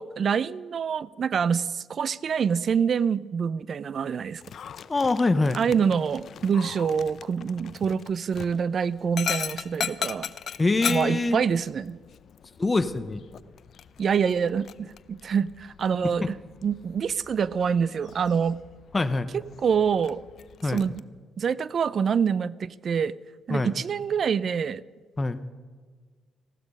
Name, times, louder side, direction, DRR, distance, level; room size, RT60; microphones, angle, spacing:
voice 1, 0.0-4.4 5.5-10.3 10.9-12.0 14.0-16.4 16.6-18.6 19.3-20.2 20.6-21.0 21.4-23.1 23.5-24.8, right 6 dB, 50° right, 20 dB, 0.4 m, -26 dB
Dog, 4.4-21.0, left 8 dB, 60° left, 0.5 m, -39 dB
voice 2, 4.9-5.6 10.6-11.4 12.6-13.2 16.2-16.3 18.9-19.3 20.6-20.8 23.5-23.7 25.2-25.4, left 3 dB, 25° left, 11 dB, 0.7 m, -24 dB
15.0 x 12.0 x 5.3 m, 1.5 s
cardioid pair, 90°, 0 cm